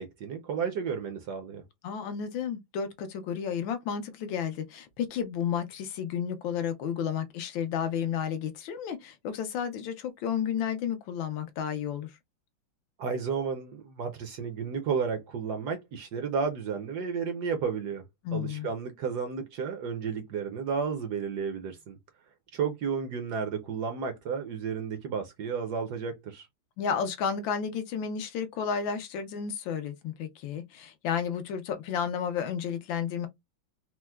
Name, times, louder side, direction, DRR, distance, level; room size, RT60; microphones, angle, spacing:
voice 1, 0.0-1.6 13.0-18.0 18.3-22.0 22.5-26.5, right 6 dB, 70° right, 1.0 m, -32 dB
voice 2, 1.8-12.1 18.2-18.7 26.8-33.3, left 7 dB, 75° left, 1.4 m, -32 dB
4.4 x 2.0 x 2.2 m
omnidirectional pair, 2.2 m